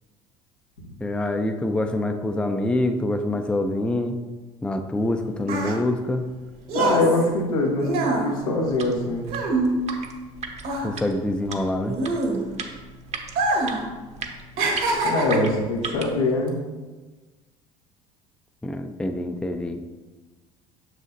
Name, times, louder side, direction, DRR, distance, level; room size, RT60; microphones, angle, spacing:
voice 1, 1.0-4.2 4.6-6.3 10.8-12.0 18.6-19.8, left 1 dB, 5° left, 6 dB, 0.5 m, -25 dB
sound 1, 5.0-10.3 10.6-12.7 13.3-13.9 14.1-15.6 16.3-16.5, right 2 dB, 55° right, 1.3 m, -25 dB
voice 2, 6.7-9.2 15.0-16.5, left 2 dB, 85° left, -1 dB, 1.2 m, -23 dB
sound 2, 8.6-16.2, right 5 dB, 40° right, 0.9 m, -37 dB
6.5 x 6.4 x 2.6 m, 1.3 s
hypercardioid pair, 70°, 17 cm